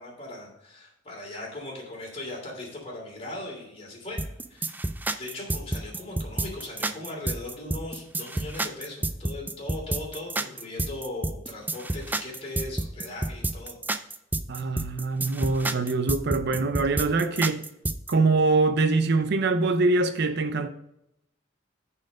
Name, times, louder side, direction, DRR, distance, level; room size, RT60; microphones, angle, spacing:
voice 1, 0.0-4.2 4.5-4.7 5.2-13.8, left 2 dB, 35° left, 3.0 m, -38 dB
sound 1, 4.2-18.1, right 2 dB, 10° right, 0.3 m, -30 dB
voice 2, 14.5-17.6 18.1-20.7, right 3 dB, 60° right, 0.6 m, -24 dB
9.5 x 4.5 x 5.0 m
head